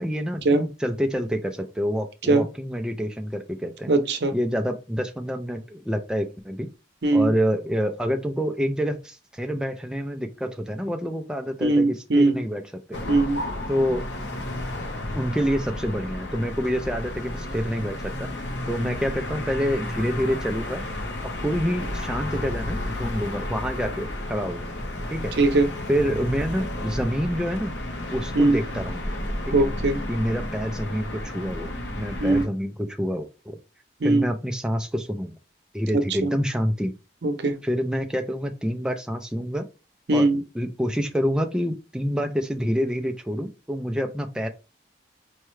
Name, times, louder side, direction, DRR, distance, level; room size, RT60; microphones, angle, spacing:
voice 1, 0.0-3.9 4.3-6.7 7.1-12.6 12.9-13.0 13.7-14.0 15.1-18.3 18.7-20.8 21.2-24.8 25.1-25.3 25.9-27.7 28.1-29.1 29.5-29.6 30.1-33.6 34.0-35.4 35.7-36.9 37.6-39.6 40.1-40.3 40.5-44.5, equal, 5° right, 0.3 m, -27 dB
voice 2, 3.9-4.3 7.0-7.3 11.6-12.4 13.1-13.4 25.4-25.7 28.4-28.6 29.5-30.0 32.2-32.4 34.0-34.3 36.2-36.3 37.2-37.6 40.1-40.4, right 2 dB, 65° right, 0.6 m, -20 dB
sound 1, 12.9-32.5, left 1 dB, 75° left, 0.8 m, -32 dB
4.6 x 2.1 x 3.1 m
head